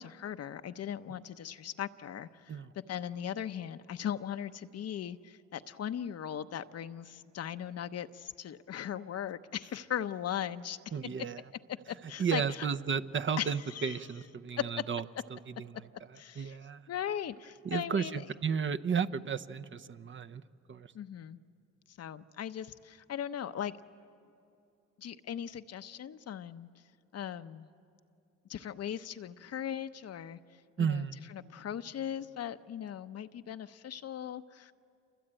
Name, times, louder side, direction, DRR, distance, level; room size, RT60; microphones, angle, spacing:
voice 1, 0.0-10.8 11.7-12.7 13.4-14.0 14.6-14.7 16.2-16.6 16.9-18.2 20.9-21.4 21.9-23.8 25.0-26.7 27.1-27.7 28.5-30.4 30.8-31.0 31.3-34.7, left 9 dB, 55° left, 10 dB, 0.8 m, -38 dB
voice 2, 10.9-11.4 12.2-15.0 15.3-15.9 16.4-16.9 17.6-20.4 20.7-20.9 30.8-31.3, right 6 dB, 40° right, 10 dB, 0.8 m, -33 dB
28.0 x 23.5 x 8.9 m, 2.8 s
cardioid pair, 90°, 30 cm